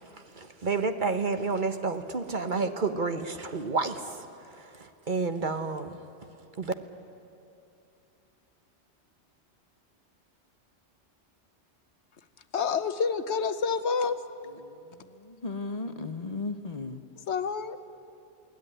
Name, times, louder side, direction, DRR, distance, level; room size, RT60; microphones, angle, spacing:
voice 1, 0.1-6.0 6.6-6.7, right 4 dB, 45° right, 1.1 m, -30 dB
voice 2, 12.5-14.2 17.3-17.8, left 5 dB, 70° left, 1.2 m, -28 dB
voice 3, 14.6-17.0, left 3 dB, 35° left, 0.9 m, -36 dB
21.5 x 17.0 x 9.9 m
omnidirectional pair, 1.2 m